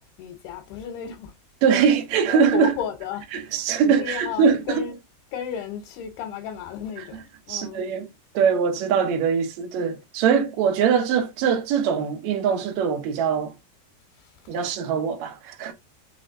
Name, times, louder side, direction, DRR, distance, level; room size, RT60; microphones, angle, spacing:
voice 1, 0.2-1.3 2.3-3.3 3.8-5.0 5.3-7.8 14.2-14.6, left 8 dB, 75° left, 2.7 m, -33 dB
voice 2, 1.6-2.7 3.3-4.6 7.5-8.0 8.3-13.5 14.5-15.7, right 6 dB, 85° right, 1.6 m, -22 dB
6.0 x 3.3 x 2.6 m
omnidirectional pair, 4.9 m